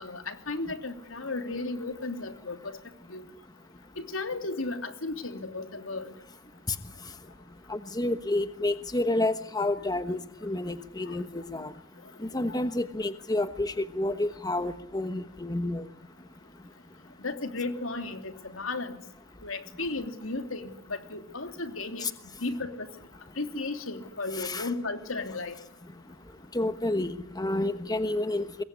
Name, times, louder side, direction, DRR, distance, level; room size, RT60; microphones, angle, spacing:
voice 1, 0.0-2.8 3.1-3.3 4.0-6.1 17.2-19.0 19.4-22.1 22.4-22.9 23.4-25.6, left 3 dB, 80° left, 7 dB, 3.1 m, -34 dB
voice 2, 7.7-11.7 12.2-15.8 22.0-22.1 24.3-24.7 26.5-28.6, left 2 dB, 20° left, 10 dB, 1.2 m, -30 dB
26.0 x 21.5 x 9.8 m, 0.75 s
head